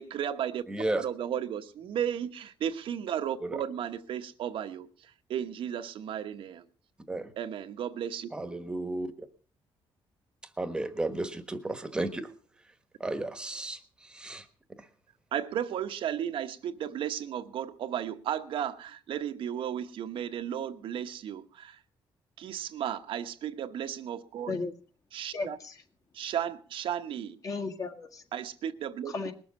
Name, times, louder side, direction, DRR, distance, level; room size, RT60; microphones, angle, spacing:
voice 1, 0.0-0.6 1.0-6.6 7.4-8.3 15.3-21.8 22.4-24.5 25.1-25.6 26.1-27.4 28.3-29.1, right 9 dB, 65° right, 1.1 m, -34 dB
voice 2, 0.7-1.0 3.4-3.6 7.1-7.3 8.3-9.3 10.6-12.3 13.0-14.5 14.8-14.9, right 2 dB, 10° right, 1.3 m, -33 dB
voice 3, 25.3-25.8 27.4-28.2 29.1-29.3, left 3 dB, 35° left, 1.9 m, -35 dB
20.5 x 7.2 x 7.2 m
cardioid pair, 165°, 10 cm